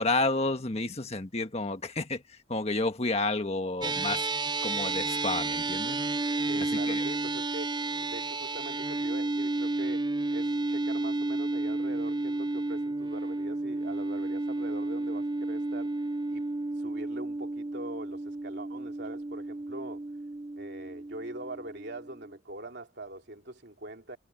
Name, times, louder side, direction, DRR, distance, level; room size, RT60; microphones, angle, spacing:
voice 1, 0.0-4.2 4.6-6.2 6.5-7.0, left 2 dB, 35° left, 1.5 m, -31 dB
sound 1, 3.8-22.4, right 2 dB, 25° right, 0.4 m, -32 dB
voice 2, 6.4-10.0 10.3-16.0 16.3-16.4 16.8-20.0 20.6-24.2, right 1 dB, 60° right, 3.4 m, -43 dB
head